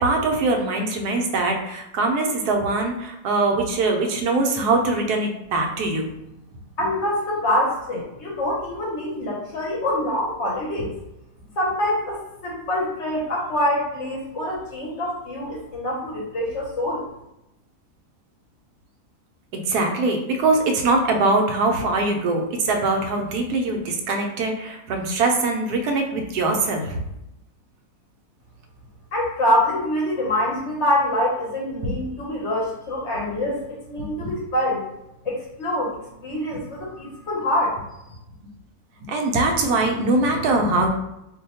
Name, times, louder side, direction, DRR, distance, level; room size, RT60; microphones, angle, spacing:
voice 1, 0.0-6.1 19.5-27.0 31.8-31.9 34.0-34.3 36.5-36.6 39.0-40.9, right 3 dB, 80° right, 2 dB, 1.1 m, -22 dB
voice 2, 6.8-10.9 11.6-17.1 29.1-34.8 35.2-37.8, left 1 dB, 60° left, -3 dB, 0.9 m, -25 dB
2.7 x 2.2 x 4.0 m, 0.86 s
omnidirectional pair, 1.6 m